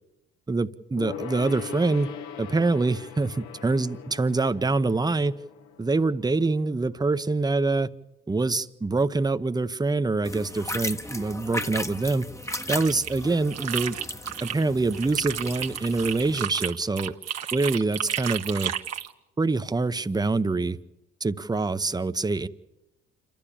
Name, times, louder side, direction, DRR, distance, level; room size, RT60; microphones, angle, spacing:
voice 1, 0.5-2.1 2.4-5.4 5.8-7.9 8.3-12.3 12.7-14.0 14.4-17.1 17.5-18.7 19.4-20.8 21.2-22.5, right 3 dB, 15° right, 12 dB, 0.8 m, -25 dB
Gong, 1.0-6.9 7.1-7.2, left 8 dB, 80° left, 1.2 m, -41 dB
sound 1, 10.2-16.4, left 1 dB, 10° left, 1.0 m, -36 dB
sound 2, 12.5-14.6 14.9-19.1, right 9 dB, 60° right, 1.2 m, -32 dB
27.5 x 12.0 x 8.6 m, 0.95 s
supercardioid pair, 65°, 30 cm